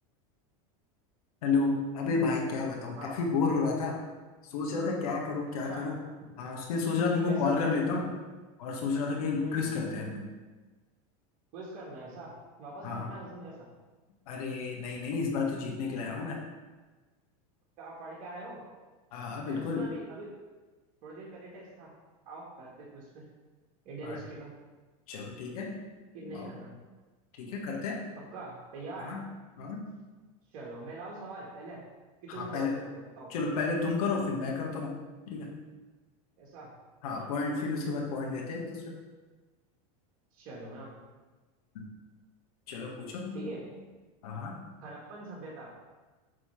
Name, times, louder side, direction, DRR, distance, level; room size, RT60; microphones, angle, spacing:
voice 1, 1.4-4.0 4.5-6.0 6.4-8.1 8.6-10.3 12.8-13.1 14.3-16.4 19.1-19.9 24.0-24.2 25.1-25.8 26.2-26.5 27.4-28.2 29.0-29.3 29.6-29.9 32.3-32.7 33.3-35.0 35.3-35.5 37.0-39.0 41.7-41.9 42.7-43.5 44.2-44.7, left 4 dB, 80° left, -1 dB, 1.6 m, -31 dB
voice 2, 5.4-6.0 7.2-7.9 9.4-9.7 11.5-13.7 17.8-18.7 19.5-20.4 21.0-21.9 22.3-23.3 23.9-24.5 26.1-26.8 28.3-29.2 30.5-31.8 32.2-33.3 36.4-36.7 37.2-37.5 40.3-40.9 43.3-43.7 44.8-45.7, right 2 dB, 45° right, -5 dB, 1.8 m, -43 dB
8.3 x 3.2 x 5.7 m, 1.3 s
supercardioid pair, 140°, 19 cm